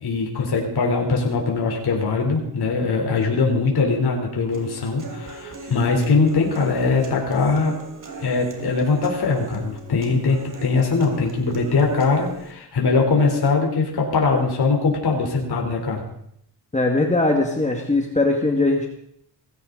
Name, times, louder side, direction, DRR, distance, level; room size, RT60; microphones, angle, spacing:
voice 1, 0.0-7.8 8.2-16.0, left 4 dB, 65° left, 0 dB, 4.0 m, -21 dB
Human voice / Acoustic guitar, 4.5-12.5, right 3 dB, 50° right, 3.5 m, -40 dB
voice 2, 16.7-18.9, left 2 dB, 15° left, 1 dB, 2.0 m, -20 dB
19.0 x 16.0 x 4.0 m, 0.72 s
cardioid pair, 110°, 41 cm